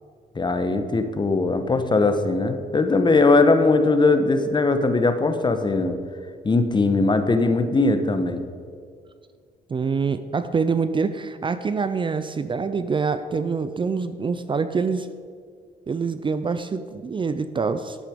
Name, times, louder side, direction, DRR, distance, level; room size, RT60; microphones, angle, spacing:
voice 1, 0.3-6.0 6.4-8.4, left 3 dB, 30° left, 8 dB, 1.1 m, -20 dB
voice 2, 9.7-15.1 15.9-18.0, right 5 dB, 30° right, 12 dB, 0.5 m, -25 dB
11.0 x 8.3 x 5.2 m, 2.1 s
cardioid pair, 75°, 16 cm